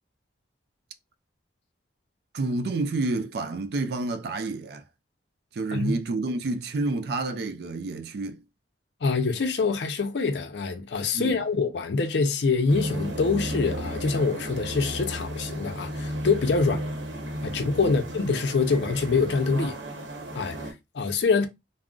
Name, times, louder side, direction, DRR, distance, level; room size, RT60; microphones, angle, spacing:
voice 1, 2.3-4.8 5.5-8.4 11.1-11.4 16.7-16.8 17.8-18.0, right 3 dB, 60° right, 0.4 m, -29 dB
voice 2, 9.0-16.8 17.4-19.8 20.3-21.5, left 4 dB, 70° left, 0.5 m, -25 dB
sound 1, 12.7-20.7, equal, 80° right, 0.8 m, -34 dB
2.3 x 2.0 x 3.6 m
head